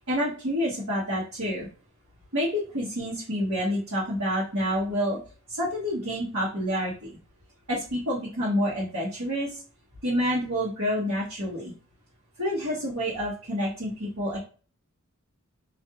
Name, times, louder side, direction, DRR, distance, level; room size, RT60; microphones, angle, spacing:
voice 1, 0.0-1.7 2.3-5.2 5.5-7.2 7.7-9.6 10.0-11.7 12.4-14.5, equal, 80° right, -8 dB, 1.1 m, -28 dB
2.6 x 2.3 x 2.8 m, 0.36 s
head